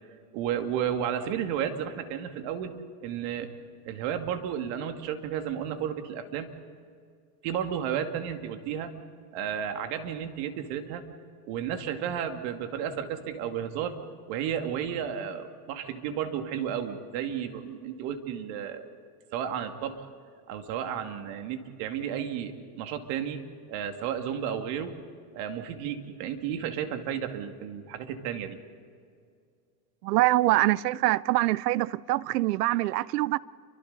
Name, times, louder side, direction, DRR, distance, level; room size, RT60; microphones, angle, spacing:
voice 1, 0.3-2.7 3.0-3.6 3.8-6.5 7.4-8.9 9.3-11.0 11.5-14.0 14.3-18.8 19.3-20.1 20.5-23.4 23.7-24.9 25.3-28.6, right 9 dB, 60° right, 2.5 m, -32 dB
voice 2, 30.0-33.4, right 17 dB, 85° right, 0.7 m, -24 dB
29.0 x 25.0 x 4.1 m
supercardioid pair, 115°, 46 cm